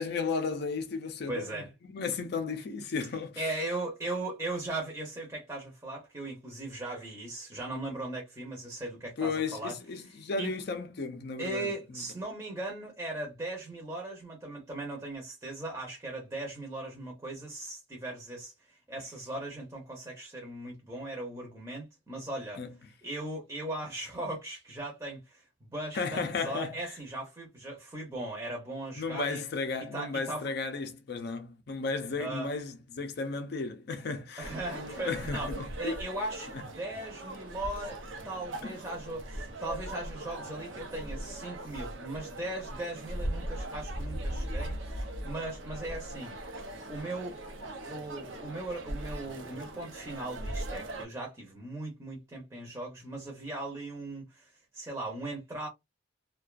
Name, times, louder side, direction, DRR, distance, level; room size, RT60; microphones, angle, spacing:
voice 1, 0.0-3.5 9.2-12.0 22.6-22.7 25.9-27.0 28.9-36.0 36.5-36.7 38.6-38.8, left 4 dB, 55° left, 0.4 m, -34 dB
voice 2, 1.3-1.7 3.4-9.7 10.4-10.5 11.4-18.5 18.9-22.6 23.0-25.4 25.7-29.4 29.9-30.5 32.2-32.5 34.4-35.5 35.8-38.0 38.2-46.4 46.9-47.4 47.8-55.7, right 2 dB, 15° right, 0.6 m, -38 dB
sound 1, 34.4-51.0, right 1 dB, 80° right, 0.6 m, -39 dB
2.4 x 2.2 x 2.3 m
head